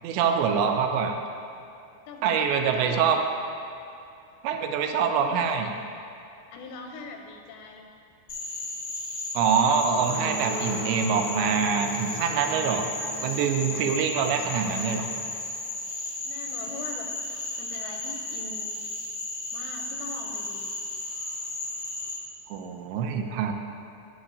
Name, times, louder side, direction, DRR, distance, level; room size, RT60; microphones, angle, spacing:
voice 1, 0.0-1.2 2.2-3.2 4.4-5.7 9.3-12.9 13.2-15.1 22.5-23.5, right 6 dB, 90° right, 5 dB, 2.8 m, -25 dB
voice 2, 2.1-3.2 5.3-5.4 6.5-7.9 11.4-11.5 12.9-13.0 16.0-17.1 17.6-18.8 19.5-20.7, left 4 dB, 85° left, 3 dB, 2.7 m, -42 dB
Frog, 8.3-22.1, left 2 dB, 45° left, 1.1 m, -34 dB
sound 1, 9.8-15.3, right 4 dB, 70° right, 2.1 m, -38 dB
15.5 x 6.1 x 2.7 m, 2.7 s
omnidirectional pair, 5.0 m